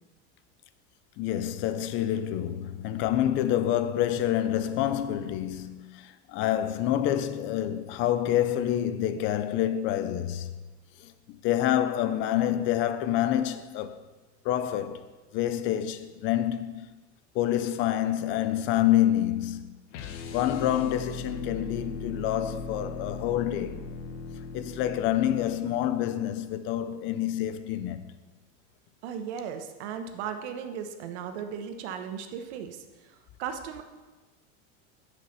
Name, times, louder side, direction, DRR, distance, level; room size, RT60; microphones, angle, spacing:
voice 1, 1.2-10.5 11.4-14.0 14.5-15.0 15.3-16.9 17.3-19.8 20.3-23.8 24.5-28.0, left 12 dB, 35° left, 0.5 m, -27 dB
sound 1, 19.9-26.0, left 4 dB, 75° left, 1.2 m, -38 dB
voice 2, 29.0-33.8, right 7 dB, 65° right, 1.2 m, -37 dB
11.0 x 6.5 x 5.4 m
cardioid pair, 170°, 36 cm